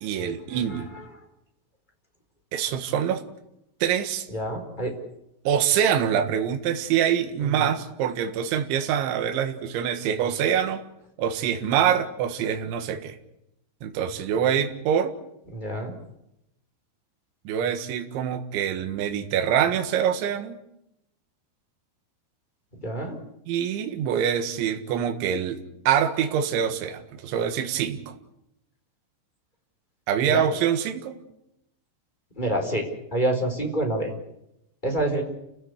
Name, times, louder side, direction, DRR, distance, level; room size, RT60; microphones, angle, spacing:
voice 1, 0.0-0.9 2.5-3.2 3.8-4.3 5.5-10.8 11.2-13.2 13.8-15.2 17.5-20.6 23.5-28.1 30.1-31.2, right 8 dB, 70° right, 6 dB, 3.8 m, -25 dB
voice 2, 4.3-4.9 7.4-7.7 15.5-15.9 22.8-23.2 30.3-30.4 32.4-34.1 34.8-35.2, right 1 dB, 10° left, 2 dB, 3.9 m, -27 dB
29.5 x 16.0 x 8.4 m, 0.84 s
omnidirectional pair, 5.9 m